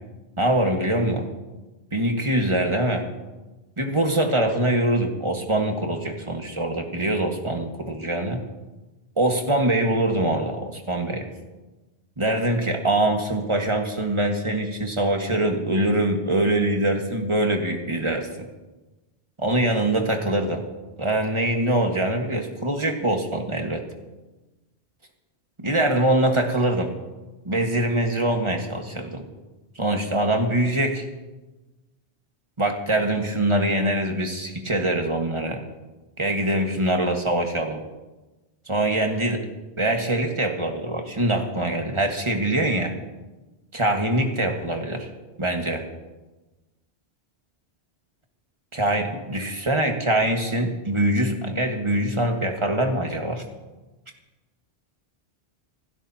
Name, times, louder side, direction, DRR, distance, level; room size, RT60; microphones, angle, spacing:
voice 1, 0.4-1.2 1.9-3.0 3.8-8.4 9.2-11.3 12.2-18.3 19.4-20.6 21.0-23.8 25.6-26.9 27.4-29.2 29.7-31.0 32.6-35.6 36.2-37.8 38.7-39.4 39.8-42.9 43.7-45.1 45.4-45.8 48.7-53.4, right 1 dB, 25° right, 3 dB, 1.6 m, -23 dB
27.0 x 12.5 x 2.8 m, 1.1 s
omnidirectional pair, 1.1 m